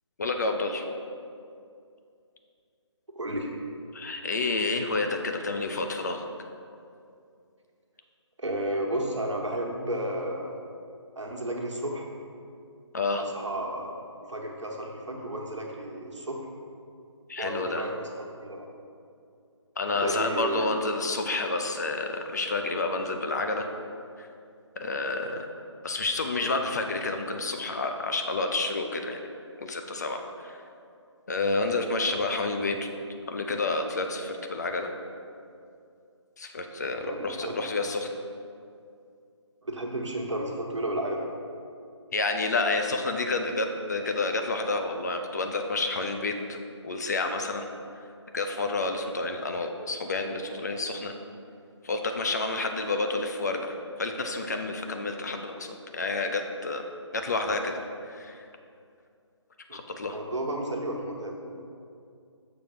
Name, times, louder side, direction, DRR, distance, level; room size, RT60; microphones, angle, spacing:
voice 1, 0.2-0.9 3.9-6.2 12.9-13.2 17.3-17.9 19.8-23.7 24.2-24.3 24.8-25.5 25.8-29.2 29.6-30.6 31.3-32.9 33.3-34.9 36.4-38.1 42.1-46.6 46.8-47.7 48.3-51.1 51.8-56.8 57.1-57.7 58.0-58.5 59.7-60.2, left 3 dB, 35° left, 4 dB, 0.4 m, -29 dB
voice 2, 3.1-3.5 8.4-10.6 11.2-12.1 13.1-13.9 14.3-16.4 17.4-18.1 18.4-18.7 19.8-20.8 37.0-37.6 39.6-41.2 59.7-59.8 60.1-61.6, right 1 dB, 75° right, 0 dB, 1.2 m, -32 dB
6.8 x 3.4 x 5.6 m, 2.4 s
figure-of-eight pair, 155°, 15 cm